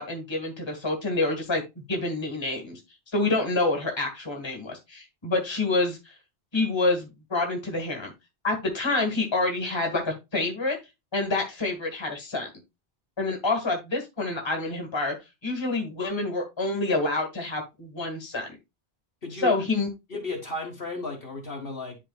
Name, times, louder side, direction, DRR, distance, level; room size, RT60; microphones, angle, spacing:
voice 1, 0.0-2.8 3.1-6.0 6.5-8.1 8.4-10.8 11.1-12.5 13.2-15.1 15.4-18.5 19.4-19.9, left 2 dB, 25° left, 1.7 m, -27 dB
voice 2, 19.2-19.5 20.1-22.0, left 2 dB, 55° left, 1.9 m, -34 dB
10.5 x 4.3 x 2.3 m
omnidirectional pair, 1.1 m